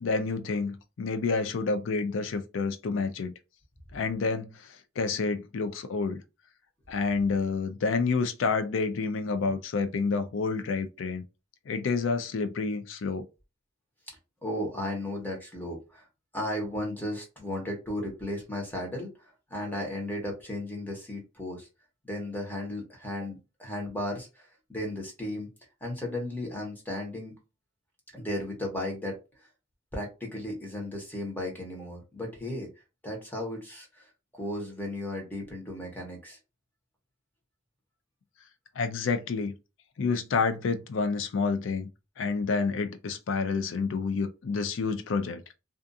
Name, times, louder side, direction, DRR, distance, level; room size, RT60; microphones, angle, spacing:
voice 1, 0.0-3.3 3.9-6.2 6.9-11.2 11.7-13.2 38.8-39.5 40.0-41.9 42.2-45.4, left 4 dB, 70° left, 0.4 m, -29 dB
voice 2, 14.4-16.1 16.3-21.7 22.0-25.5 25.8-27.3 28.1-29.2 29.9-32.7 33.0-34.1 34.3-36.4, left 1 dB, 10° left, 0.9 m, -35 dB
2.4 x 2.4 x 2.6 m
head